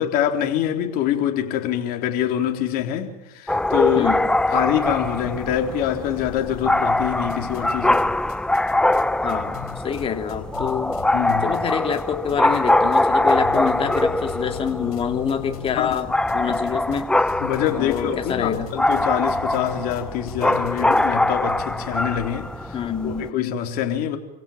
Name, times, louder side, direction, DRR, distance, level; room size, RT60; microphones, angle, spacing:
voice 1, 0.0-4.1 4.5-8.2 11.1-11.5 15.8-16.0 16.2-16.4 17.4-24.2, left 10 dB, 55° left, 3.8 m, -25 dB
sound 1, 3.5-23.3, left 1 dB, 5° left, 0.7 m, -23 dB
voice 2, 4.0-4.3 9.2-11.0 11.4-16.1 16.3-17.1 17.7-18.7 22.7-23.3, left 7 dB, 30° left, 3.1 m, -26 dB
sound 2, 7.3-8.0 8.3-12.0 12.3-13.0 13.3-21.1, left 11 dB, 80° left, 3.8 m, -39 dB
27.5 x 16.5 x 7.4 m
hypercardioid pair, 105°, 19 cm